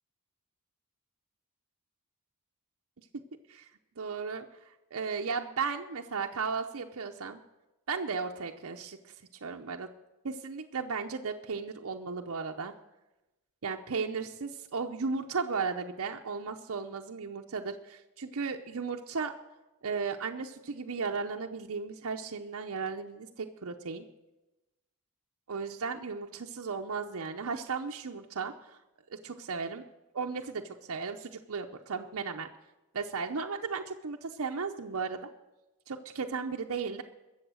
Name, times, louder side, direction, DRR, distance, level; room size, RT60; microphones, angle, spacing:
voice 1, 4.0-4.5 4.9-7.4 7.9-9.1 9.4-9.9 10.2-12.7 13.6-19.3 19.8-24.0 25.5-28.8 29.1-29.8 30.1-32.5 32.9-35.3 35.9-37.0, right 5 dB, 65° right, 3 dB, 0.7 m, -35 dB
21.5 x 7.2 x 6.3 m, 1.0 s
head